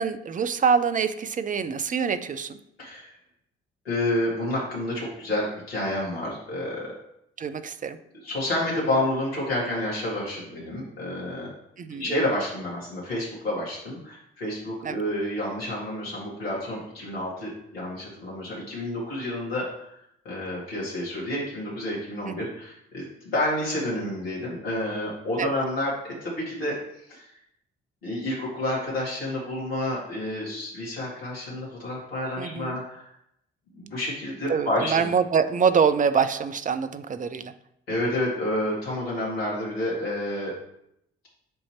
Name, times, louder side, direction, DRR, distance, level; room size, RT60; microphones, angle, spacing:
voice 1, 0.0-2.6 7.4-8.0 11.8-12.1 14.8-15.0 22.3-22.5 25.4-25.5 32.4-32.8 34.5-37.5, right 6 dB, 25° right, 12 dB, 0.5 m, -25 dB
voice 2, 2.8-3.1 3.8-6.8 8.2-11.5 11.9-19.9 20.2-25.9 26.2-26.8 27.1-27.3 28.0-33.1 33.7-35.1 37.9-40.5, left 1 dB, 85° left, -6 dB, 2.0 m, -29 dB
7.7 x 2.8 x 4.4 m, 0.77 s
figure-of-eight pair, 45°, 29 cm